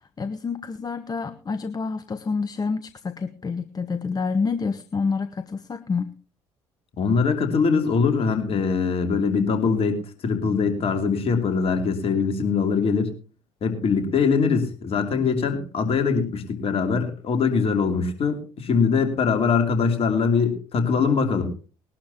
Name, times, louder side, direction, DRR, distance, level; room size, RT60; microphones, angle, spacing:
voice 1, 0.0-6.1, left 4 dB, 30° left, 10 dB, 0.9 m, -28 dB
voice 2, 7.0-13.1 13.6-21.5, left 5 dB, 50° left, 6 dB, 2.9 m, -22 dB
20.5 x 12.0 x 2.9 m, 0.34 s
hypercardioid pair, 60°, 13 cm